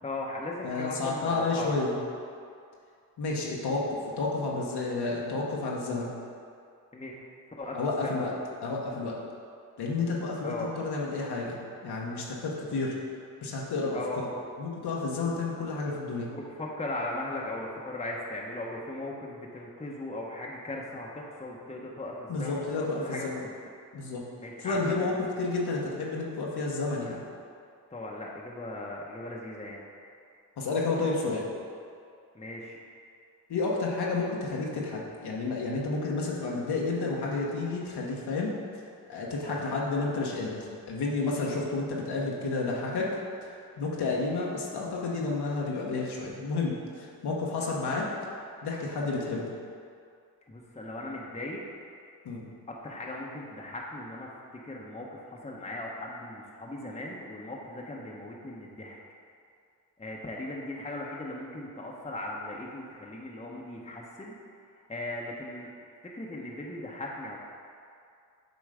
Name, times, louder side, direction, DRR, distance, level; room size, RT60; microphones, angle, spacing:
voice 1, 0.0-1.8 6.9-7.2 7.6-8.3 10.4-10.7 13.9-14.3 16.3-23.5 24.4-25.2 27.9-29.8 32.3-32.8 39.5-39.8 44.1-44.5 50.5-51.6 52.7-59.0 60.0-64.4 64.9-65.7 66.0-67.4, left 1 dB, 15° left, -2 dB, 0.9 m, -38 dB
voice 2, 0.6-2.0 3.2-6.1 7.7-8.3 8.6-9.2 9.8-12.9 13.4-14.2 14.6-16.3 22.3-23.4 23.9-24.2 24.6-25.1 25.4-27.2 30.6-31.5 33.5-38.5 39.1-43.1 43.5-48.0 48.6-49.5 52.2-52.4, left 3 dB, 70° left, -3 dB, 1.1 m, -31 dB
8.0 x 3.1 x 4.9 m, 2.4 s
supercardioid pair, 55°, 40 cm